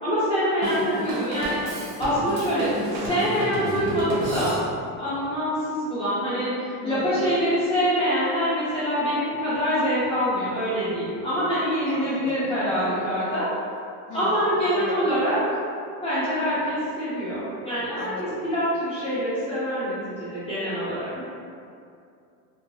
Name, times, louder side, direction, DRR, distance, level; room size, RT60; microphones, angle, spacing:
voice 1, 0.0-1.6 2.0-4.5 5.0-13.5 14.1-15.4 16.0-21.2, equal, 15° left, -13 dB, 0.4 m, -25 dB
Drum kit / Drum, 0.6-5.0, right 1 dB, 85° right, 0.7 m, -32 dB
voice 2, 6.8-7.2 11.9-12.4 14.1-14.4 14.7-15.0 18.0-18.4, left 2 dB, 75° left, -1 dB, 0.6 m, -37 dB
2.8 x 2.2 x 2.6 m, 2.5 s
cardioid pair, 155°, 45 cm